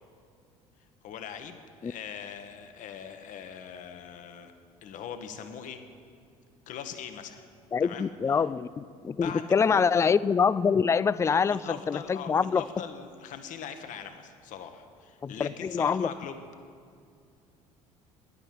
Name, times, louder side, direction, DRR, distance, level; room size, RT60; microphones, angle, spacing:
voice 1, 1.0-4.5 4.8-5.8 6.7-7.5 7.8-8.4 9.1-9.8 11.3-16.4, left 8 dB, 50° left, 8 dB, 1.2 m, -41 dB
voice 2, 7.7-12.6 15.2-16.1, left 6 dB, 15° left, 18 dB, 0.3 m, -25 dB
10.5 x 10.0 x 8.6 m, 2.3 s
figure-of-eight pair, 60°, 17 cm